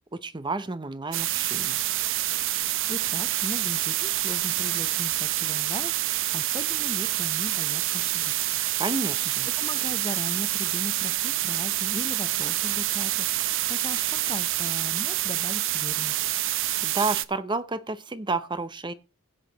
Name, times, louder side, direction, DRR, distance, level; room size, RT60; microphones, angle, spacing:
voice 1, 0.1-1.8 8.8-9.5 16.8-18.9, right 3 dB, 20° right, 0.7 m, -30 dB
sound 1, 1.1-17.2, right 14 dB, 60° right, 0.7 m, -27 dB
voice 2, 2.9-8.6 9.0-16.2, left 2 dB, 20° left, 0.8 m, -38 dB
16.0 x 8.2 x 4.0 m
head